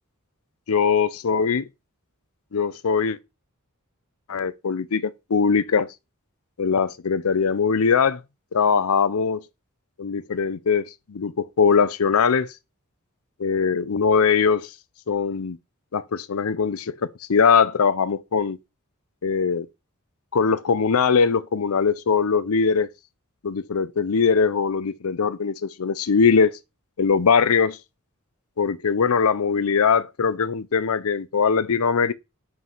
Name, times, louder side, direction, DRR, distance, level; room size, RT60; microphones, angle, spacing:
voice 1, 0.7-1.6 2.5-3.2 4.3-5.9 6.6-8.2 8.5-9.4 10.0-12.5 13.4-14.7 15.1-15.6 15.9-18.6 19.2-19.7 20.3-22.9 23.4-26.6 27.0-27.8 28.6-32.1, left 5 dB, 80° left, 0.6 m, -21 dB
5.7 x 4.8 x 5.5 m
head